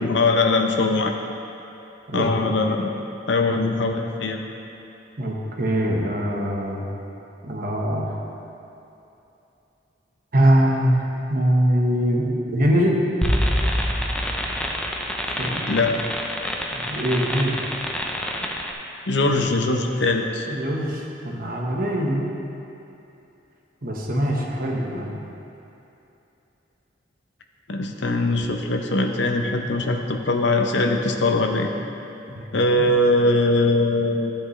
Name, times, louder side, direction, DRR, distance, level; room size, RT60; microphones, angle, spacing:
voice 1, 0.0-1.1 2.1-2.9 3.3-4.4 15.7-16.0 19.1-20.5 27.7-31.7 32.5-34.3, left 2 dB, 75° left, 3 dB, 0.7 m, -21 dB
voice 2, 2.1-2.8 5.2-6.9 7.4-8.1 10.3-11.0 11.3-13.0 15.4-15.7 16.7-17.6 20.5-22.2 23.8-25.1 32.3-32.4, equal, 55° right, -1 dB, 1.2 m, -22 dB
sound 1, 13.2-18.7, equal, 5° left, 0.6 m, -26 dB
12.5 x 8.2 x 3.2 m, 2.9 s
head